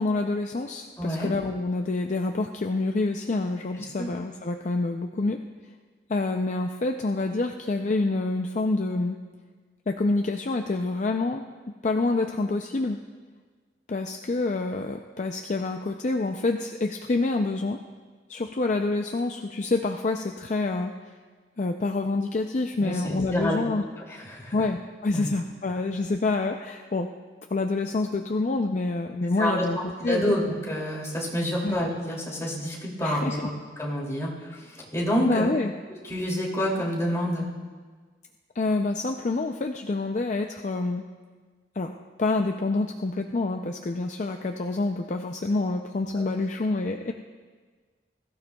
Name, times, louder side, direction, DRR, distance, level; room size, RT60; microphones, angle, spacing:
voice 1, 0.0-5.4 6.1-9.2 9.9-11.4 11.8-13.0 13.9-17.8 18.3-20.9 21.6-23.8 24.5-27.1 27.5-30.4 31.6-31.8 33.0-33.4 35.2-35.7 38.6-41.0 41.8-41.9 42.2-47.1, left 3 dB, 45° left, 4 dB, 0.5 m, -27 dB
voice 2, 1.0-1.3 4.0-4.1 22.8-23.6 24.1-24.6 25.1-25.3 29.4-29.6 30.0-30.4 30.7-33.5 33.8-35.5 36.1-37.5, equal, 15° left, -4 dB, 2.7 m, -28 dB
21.5 x 14.5 x 2.3 m, 1.5 s
head